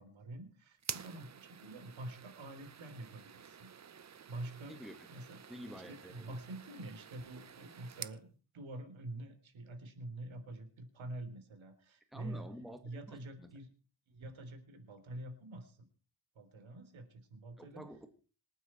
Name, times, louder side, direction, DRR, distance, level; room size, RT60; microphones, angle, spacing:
voice 1, 0.0-3.7 4.3-4.8 5.1-5.4 5.7-12.5 12.8-13.7 14.1-15.9 16.4-17.9, right 1 dB, 85° right, 3.7 m, -47 dB
sound 1, 0.8-8.2, right 7 dB, 35° right, 0.7 m, -49 dB
voice 2, 5.5-6.4 12.1-13.5 17.6-18.1, equal, ahead, 1.9 m, -49 dB
26.5 x 9.4 x 4.5 m
wide cardioid pair, 150°, 46 cm